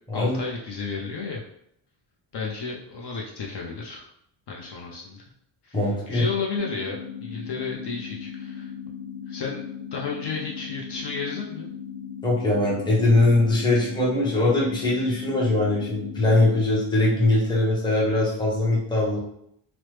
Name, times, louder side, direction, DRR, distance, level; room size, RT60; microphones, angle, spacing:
voice 1, 0.1-1.4 2.3-4.1 4.5-5.2 5.6-8.7 9.3-9.6 9.9-11.7, left 4 dB, 55° left, -1 dB, 0.6 m, -32 dB
voice 2, 5.7-6.2 12.2-19.2, left 2 dB, 10° left, -5 dB, 0.6 m, -21 dB
sound 1, 6.6-16.6, left 7 dB, 45° right, 0.4 m, -37 dB
3.0 x 2.0 x 3.1 m, 0.72 s
wide cardioid pair, 175°, 50 cm